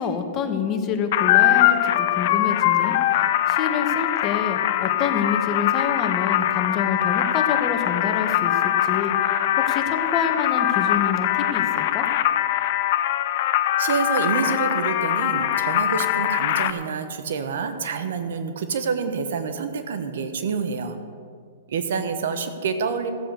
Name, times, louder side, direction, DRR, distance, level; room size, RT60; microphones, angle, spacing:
voice 1, 0.0-3.0 3.5-12.1, left 6 dB, 30° left, 6 dB, 1.5 m, -27 dB
sound 1, 1.1-16.7, left 12 dB, 55° left, 0.6 m, -22 dB
voice 2, 13.8-21.0 21.7-23.1, right 5 dB, 70° right, 8 dB, 1.3 m, -27 dB
15.0 x 7.6 x 6.8 m, 2.2 s
hypercardioid pair, 120°, 0 cm